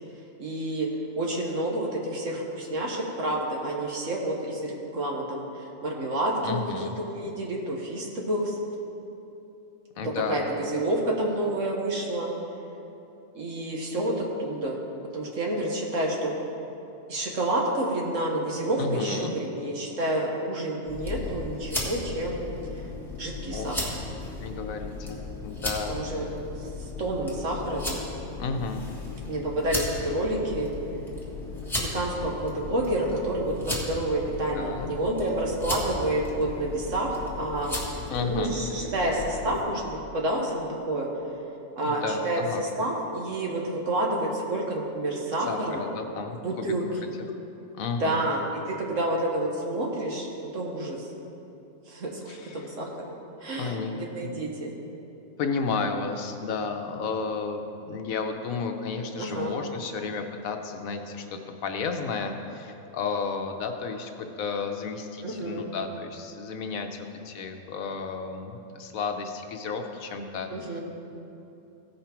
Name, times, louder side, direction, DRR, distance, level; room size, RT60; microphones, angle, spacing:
voice 1, 0.4-0.9 1.2-8.6 10.3-12.3 13.3-14.8 15.1-16.3 17.1-22.4 23.2-23.8 25.9-26.2 26.6-28.1 29.3-30.7 31.8-37.8 38.2-41.1 41.8-45.8 46.4-47.1 48.0-51.1 51.9-52.9 53.4-54.7 59.2-59.5 65.2-65.7 70.5-70.8, right 1 dB, 65° right, -1 dB, 1.6 m, -29 dB
voice 2, 6.4-6.9 10.0-10.5 18.8-19.3 23.5-23.9 24.4-26.2 28.4-28.8 34.5-34.9 38.1-38.5 41.8-42.6 45.5-46.7 47.7-48.2 52.3-52.7 53.6-54.4 55.4-70.8, left 4 dB, 80° left, 5 dB, 1.2 m, -32 dB
sound 1, 20.8-39.6, left 2 dB, ahead, 1.4 m, -36 dB
16.0 x 5.5 x 4.4 m, 2.9 s
omnidirectional pair, 1.4 m